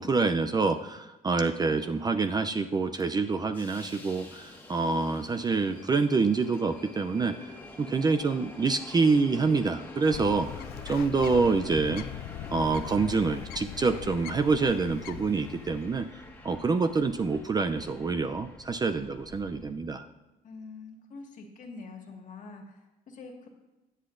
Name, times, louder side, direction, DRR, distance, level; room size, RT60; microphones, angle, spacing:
voice 1, 0.0-7.5 7.8-12.0 12.5-16.1 16.4-20.1, right 4 dB, 25° right, 8 dB, 0.5 m, -26 dB
Subway metro underground, 1.8-19.7, left 2 dB, 10° left, 1.5 m, -48 dB
Bird, 10.1-16.1, left 13 dB, 65° left, 0.4 m, -41 dB
voice 2, 20.4-23.5, left 4 dB, 50° left, 3 dB, 1.8 m, -45 dB
21.5 x 7.8 x 2.6 m, 1.0 s
cardioid pair, 110°, 17 cm